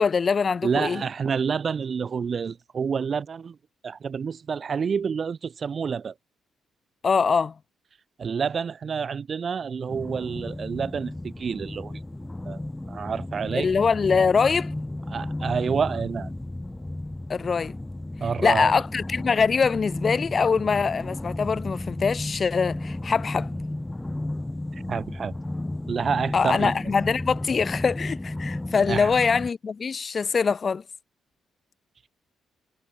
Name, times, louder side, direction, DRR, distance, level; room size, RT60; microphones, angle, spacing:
voice 1, 0.0-1.0 7.0-7.5 13.5-14.7 17.3-17.8 18.4-23.5 26.3-30.8, left 5 dB, 40° left, 0.6 m, -23 dB
voice 2, 0.6-3.6 3.8-6.1 8.2-12.0 12.4-12.6 12.9-13.7 15.1-16.3 18.2-18.7 24.7-25.3 25.9-26.8 28.9-29.1, right 6 dB, 45° right, 0.8 m, -28 dB
sound 1, 9.9-29.5, left 1 dB, 10° left, 0.8 m, -33 dB
cardioid pair, 90°, 0 cm